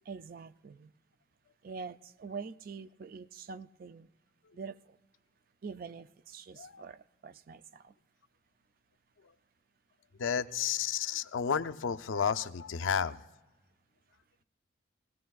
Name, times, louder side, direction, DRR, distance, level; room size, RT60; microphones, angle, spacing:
voice 1, 0.0-0.9 1.6-4.1 4.5-5.0 5.6-7.9, right 5 dB, 45° right, 14 dB, 0.3 m, -45 dB
voice 2, 10.2-13.2, left 7 dB, 80° left, 10 dB, 0.5 m, -32 dB
19.5 x 17.0 x 2.3 m, 1.1 s
head